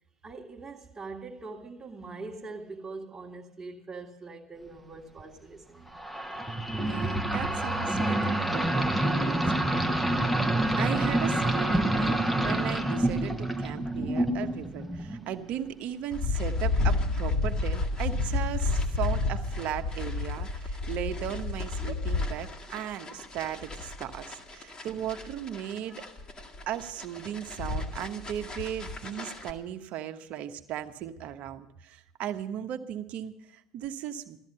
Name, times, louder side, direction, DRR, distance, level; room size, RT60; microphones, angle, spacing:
voice 1, 0.2-6.0, right 3 dB, 15° right, 1.9 m, -42 dB
sound 1, 5.9-15.3, right 1 dB, 5° left, 1.4 m, -27 dB
voice 2, 6.8-9.5 10.8-26.0 26.7-34.4, right 10 dB, 50° right, 1.1 m, -37 dB
sound 2, 16.1-29.5, left 3 dB, 30° left, 2.1 m, -31 dB
16.0 x 13.5 x 5.6 m
figure-of-eight pair, 70°, 3 cm